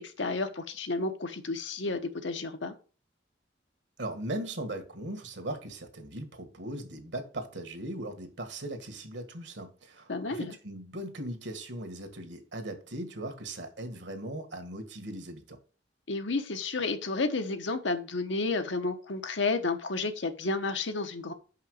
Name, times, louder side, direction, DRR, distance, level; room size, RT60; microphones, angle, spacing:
voice 1, 0.0-2.7 10.1-10.5 16.1-21.3, left 3 dB, 90° left, 1.1 m, -31 dB
voice 2, 4.0-15.6, right 1 dB, 75° right, 1.7 m, -39 dB
5.9 x 5.6 x 6.3 m
head